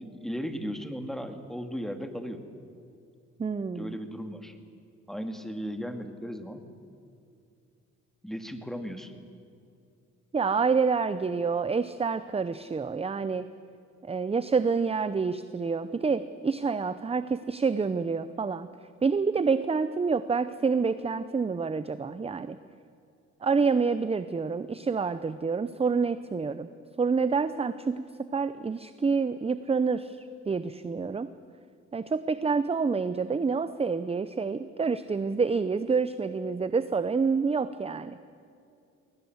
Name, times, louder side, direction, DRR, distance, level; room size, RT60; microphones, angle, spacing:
voice 1, 0.0-2.4 3.7-4.6 5.1-6.6 8.2-9.1, equal, ahead, 7 dB, 2.1 m, -36 dB
voice 2, 3.4-3.9 10.3-13.5 14.1-18.7 19.0-22.6 23.4-26.7 27.0-31.3 31.9-38.2, right 5 dB, 20° right, 13 dB, 0.7 m, -28 dB
21.5 x 18.5 x 8.0 m, 2.5 s
cardioid pair, 90°, 30 cm